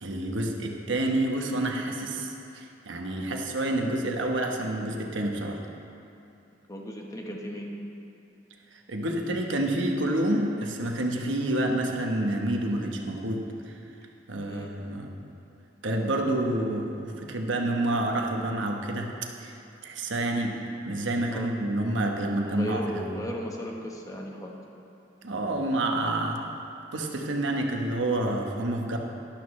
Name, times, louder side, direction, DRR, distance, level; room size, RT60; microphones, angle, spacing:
voice 1, 0.0-5.6 8.9-13.7 14.3-15.1 15.8-19.1 19.4-20.6 20.8-23.2 25.2-26.4 26.9-29.0, right 1 dB, 80° right, 2 dB, 1.1 m, -28 dB
voice 2, 6.7-7.7 14.5-14.7 21.3-21.5 22.4-24.5, equal, 20° left, 0 dB, 1.1 m, -36 dB
12.5 x 11.5 x 3.2 m, 2.7 s
head